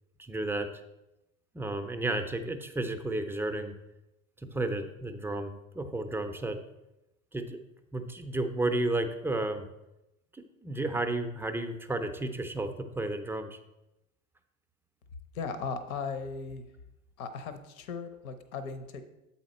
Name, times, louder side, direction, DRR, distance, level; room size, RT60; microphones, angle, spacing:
voice 1, 0.2-0.7 1.5-3.8 4.5-6.6 7.3-7.6 7.9-9.7 10.3-13.6, right 2 dB, 5° right, 6 dB, 0.4 m, -32 dB
voice 2, 15.3-16.6 17.2-19.0, left 5 dB, 75° left, 10 dB, 0.8 m, -37 dB
7.5 x 4.3 x 4.1 m, 0.92 s
hypercardioid pair, 90°, 43 cm